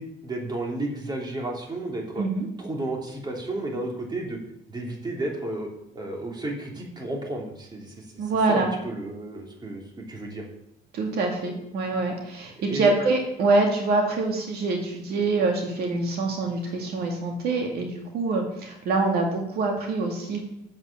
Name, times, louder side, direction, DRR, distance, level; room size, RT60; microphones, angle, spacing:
voice 1, 0.0-2.2 2.6-4.4 4.7-5.7 5.9-10.4 12.7-12.9, right 2 dB, 25° right, 0 dB, 3.0 m, -32 dB
voice 2, 8.2-8.7 10.9-20.4, right 3 dB, 70° right, 1 dB, 2.1 m, -25 dB
7.9 x 7.8 x 7.3 m, 0.79 s
cardioid pair, 110°, 17 cm